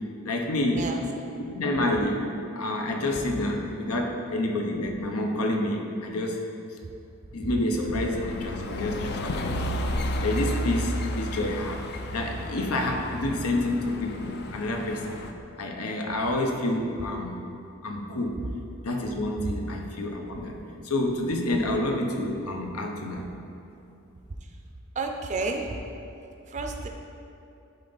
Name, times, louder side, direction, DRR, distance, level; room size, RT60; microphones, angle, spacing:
voice 1, 0.2-0.8 1.5-2.3 2.6-6.4 7.3-9.8 10.2-11.8 12.1-15.2 15.6-17.4 17.8-18.4 18.8-20.6 20.8-23.3, left 1 dB, 90° left, 2 dB, 0.9 m, -28 dB
sound 1, 7.8-15.3, left 1 dB, 50° left, 0.4 m, -32 dB
voice 2, 25.0-25.8 26.5-26.9, right 3 dB, 35° right, 3 dB, 0.5 m, -31 dB
11.5 x 3.9 x 4.0 m, 2.7 s
head